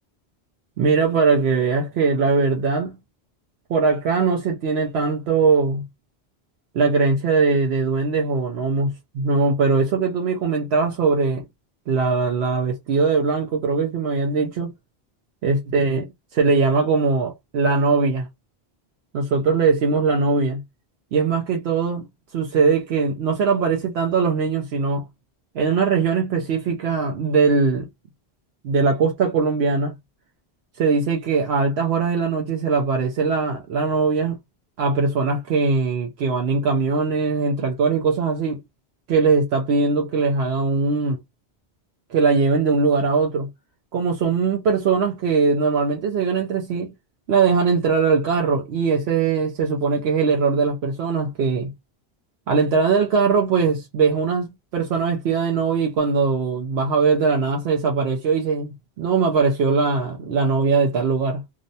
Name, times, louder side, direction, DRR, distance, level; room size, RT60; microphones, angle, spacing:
voice 1, 0.8-2.9 3.7-5.8 6.7-11.4 11.9-14.7 15.4-16.0 16.3-18.3 19.1-20.6 21.1-22.1 22.3-25.0 25.5-27.9 28.6-30.0 30.8-34.4 34.8-38.6 39.1-41.2 42.1-43.5 43.9-46.9 47.3-51.7 52.5-61.4, right 4 dB, 75° right, 0.8 m, -21 dB
2.6 x 2.1 x 2.6 m
omnidirectional pair, 1.1 m